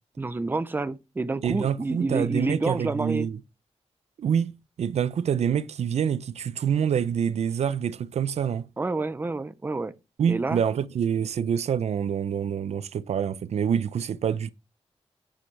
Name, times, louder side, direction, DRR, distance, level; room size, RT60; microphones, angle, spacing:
voice 1, 0.2-3.3 8.8-9.9 10.3-10.6, right 3 dB, 20° right, 0.6 m, -28 dB
voice 2, 1.4-3.4 4.2-8.7 10.2-14.5, right 8 dB, 75° right, 0.5 m, -26 dB
8.6 x 7.6 x 3.3 m
wide cardioid pair, 145°, 11 cm